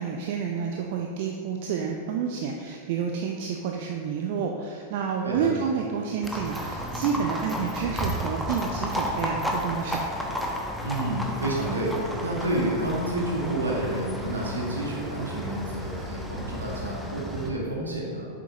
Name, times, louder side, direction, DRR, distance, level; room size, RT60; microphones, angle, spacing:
voice 1, 0.0-10.0, right 6 dB, 50° right, 2 dB, 0.5 m, -29 dB
Livestock farm animals working animals, 6.2-17.5, equal, ahead, 1.0 m, -32 dB
voice 2, 10.8-18.3, right 1 dB, 75° right, -3 dB, 1.8 m, -29 dB
8.2 x 7.3 x 2.9 m, 2.3 s
figure-of-eight pair, 90°, 0 cm